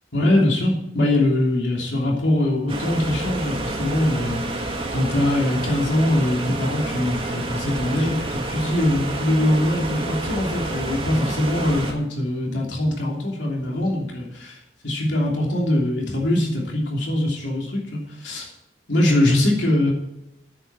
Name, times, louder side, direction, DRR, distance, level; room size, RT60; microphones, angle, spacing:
voice 1, 0.1-14.6 14.8-18.5 18.9-19.9, left 1 dB, 85° left, -2 dB, 3.0 m, -22 dB
sound 1, 2.7-11.9, right 2 dB, 30° right, 1.7 m, -29 dB
9.8 x 8.5 x 6.2 m, 0.84 s
head